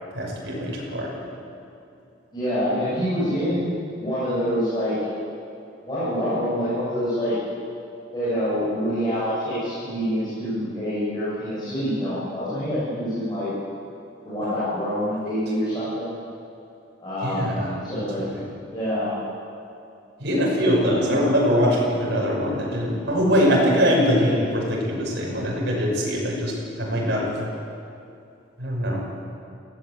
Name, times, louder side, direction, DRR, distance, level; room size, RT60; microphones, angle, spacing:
voice 1, 0.1-1.1 17.2-17.7 18.2-18.4 20.2-27.3 28.6-29.2, equal, 60° right, -3 dB, 6.5 m, -22 dB
voice 2, 2.3-5.0 5.8-7.4 8.1-13.5 14.2-16.2 17.0-17.5 17.8-18.2 18.7-19.1 20.7-21.2, equal, 25° left, -12 dB, 7.5 m, -26 dB
21.5 x 17.0 x 8.0 m, 2.7 s
head